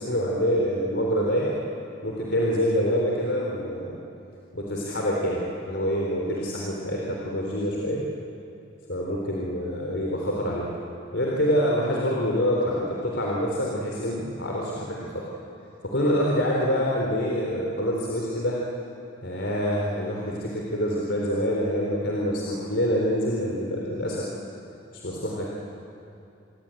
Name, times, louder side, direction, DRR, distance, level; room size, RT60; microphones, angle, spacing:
voice 1, 0.0-1.5 2.0-4.0 4.5-8.0 8.9-10.7 11.1-15.2 15.8-18.6 19.2-24.3 24.9-25.5, equal, 70° left, -2 dB, 3.9 m, -26 dB
28.5 x 22.5 x 9.1 m, 2.7 s
head